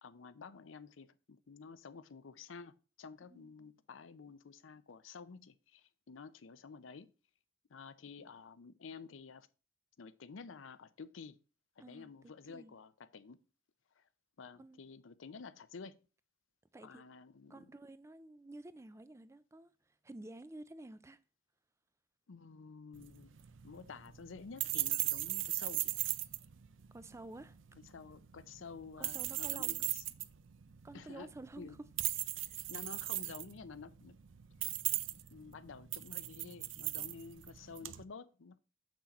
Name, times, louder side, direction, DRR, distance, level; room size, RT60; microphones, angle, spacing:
voice 1, 0.0-7.1 7.7-9.5 10.0-11.4 11.8-13.4 14.0-14.1 14.4-16.0 16.8-17.7 22.3-23.4 23.6-26.0 27.9-30.0 30.9-31.3 31.6-31.8 32.4-34.2 35.3-38.6, left 5 dB, 85° left, 0.6 m, -51 dB
voice 2, 3.3-3.7 11.8-12.8 14.6-14.8 16.7-17.0 17.5-19.7 20.0-21.2 26.9-27.6 29.0-29.9 30.8-31.8, right 2 dB, 15° right, 0.4 m, -51 dB
sound 1, 22.9-38.0, right 16 dB, 80° right, 0.5 m, -39 dB
7.1 x 6.1 x 4.2 m
head